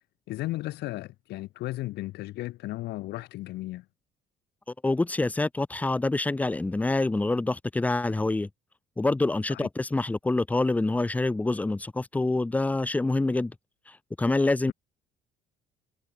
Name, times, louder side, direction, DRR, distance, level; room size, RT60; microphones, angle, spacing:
voice 1, 0.3-3.8 9.5-9.7 14.7-14.8, left 17 dB, 80° left, 4.3 m, -35 dB
voice 2, 4.8-8.5 9.0-13.5 14.2-14.7, left 2 dB, 10° left, 0.5 m, -26 dB
cardioid pair, 110°, 17 cm